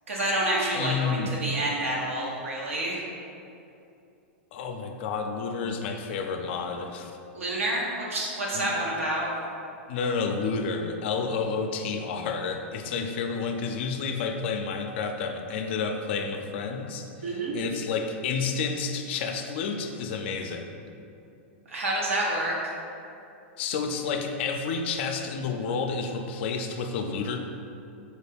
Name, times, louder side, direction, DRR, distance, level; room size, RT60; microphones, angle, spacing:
voice 1, 0.1-3.0 7.3-9.3 17.2-17.6 21.7-22.5, right 1 dB, 90° right, -4 dB, 0.9 m, -28 dB
voice 2, 0.7-1.4 4.5-7.2 8.5-8.7 9.9-20.8 23.6-27.4, left 5 dB, 60° left, 5 dB, 0.4 m, -30 dB
4.5 x 2.2 x 3.3 m, 2.7 s
hypercardioid pair, 115°, 7 cm